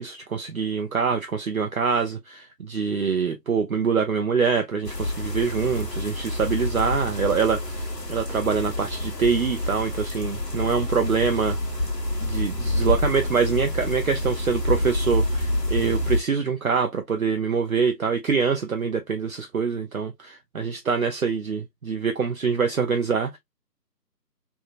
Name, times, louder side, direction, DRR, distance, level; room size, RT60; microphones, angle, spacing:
voice 1, 0.0-11.6 12.2-23.4, right 5 dB, 60° right, 0.6 m, -25 dB
sound 1, 4.8-16.2, left 1 dB, 75° left, 1.4 m, -27 dB
3.3 x 2.7 x 2.4 m
figure-of-eight pair, 160°, 50 cm